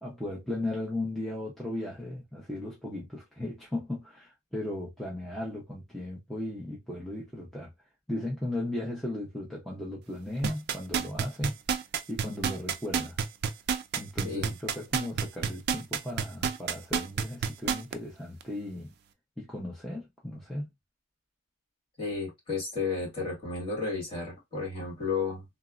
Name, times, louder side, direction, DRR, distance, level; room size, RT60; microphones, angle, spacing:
voice 1, 0.0-7.7 8.1-11.6 12.1-13.2 14.0-18.9 19.4-20.7, left 1 dB, ahead, 0.6 m, -36 dB
sound 1, 10.4-17.9 18.4-18.5, right 7 dB, 55° right, 0.3 m, -28 dB
voice 2, 14.2-14.5 22.0-25.4, left 4 dB, 25° left, 1.6 m, -33 dB
3.4 x 2.0 x 2.4 m
head